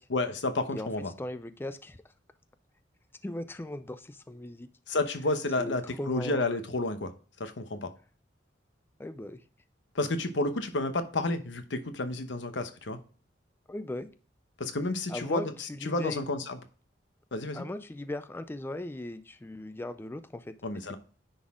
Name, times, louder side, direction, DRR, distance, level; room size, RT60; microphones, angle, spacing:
voice 1, 0.1-1.1 4.9-7.1 7.4-7.9 9.9-13.0 14.6-16.6 17.3-17.6 20.6-21.0, left 2 dB, 90° left, 8 dB, 0.9 m, -31 dB
voice 2, 1.2-2.0 3.2-4.7 5.6-6.4 9.0-9.4 13.7-14.1 15.1-16.2 17.5-21.0, left 1 dB, 10° left, 11 dB, 0.3 m, -38 dB
9.8 x 4.1 x 3.6 m, 0.40 s
head